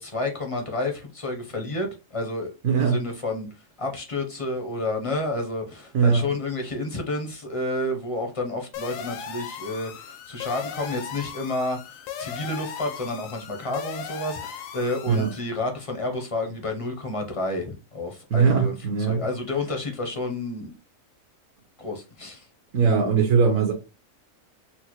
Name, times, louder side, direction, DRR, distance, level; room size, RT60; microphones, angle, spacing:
voice 1, 0.0-3.5 3.8-18.8 19.1-20.7 21.8-22.5, left 2 dB, 40° left, 0.5 m, -30 dB
voice 2, 2.6-3.0 5.9-6.3 15.1-15.3 18.3-19.2 22.7-23.7, right 5 dB, 65° right, 1.0 m, -20 dB
sound 1, 8.7-15.4, left 7 dB, 70° left, 0.9 m, -37 dB
4.4 x 2.1 x 2.9 m
omnidirectional pair, 1.6 m